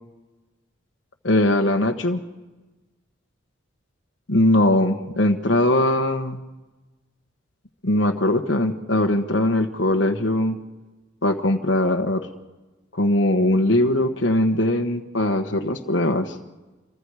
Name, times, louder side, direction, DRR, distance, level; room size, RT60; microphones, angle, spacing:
voice 1, 1.2-2.2 4.3-6.4 7.8-10.6 11.2-12.3 12.9-16.3, left 1 dB, 70° left, 3 dB, 1.3 m, -20 dB
28.0 x 24.0 x 4.9 m, 1.2 s
head